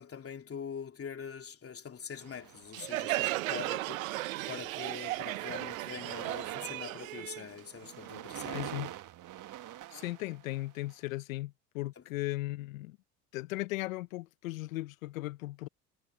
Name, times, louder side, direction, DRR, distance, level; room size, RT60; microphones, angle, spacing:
voice 1, 0.0-8.6 12.0-12.1, left 7 dB, 35° left, 3.0 m, -44 dB
sound 1, 2.2-3.2 3.9-4.2 4.4-10.9, right 13 dB, 50° right, 1.5 m, -45 dB
Crowd, 2.7-8.2, right 18 dB, 90° right, 0.7 m, -35 dB
voice 2, 8.5-8.9 9.9-13.0 13.3-15.7, left 18 dB, 90° left, 0.8 m, -37 dB
hypercardioid pair, 80°, 39 cm